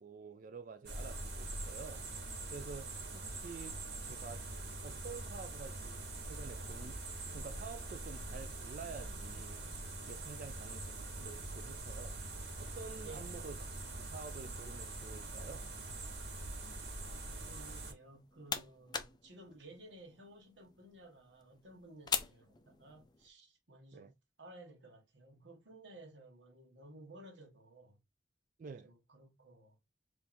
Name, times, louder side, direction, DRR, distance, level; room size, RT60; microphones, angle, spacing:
voice 1, 0.0-2.1 2.5-4.5 4.8-7.0 7.3-9.6 10.1-12.2 12.6-13.7 14.0-15.7 23.9-24.1 28.6-28.9, right 5 dB, 45° right, 0.3 m, -49 dB
sound 1, 0.9-17.9, right 2 dB, 65° right, 1.3 m, -44 dB
voice 2, 13.0-13.4 17.4-24.1 24.4-28.0 28.8-29.8, right 2 dB, 90° right, 1.4 m, -56 dB
sound 2, 18.0-23.3, left 6 dB, 25° left, 0.4 m, -43 dB
3.5 x 2.6 x 4.3 m
head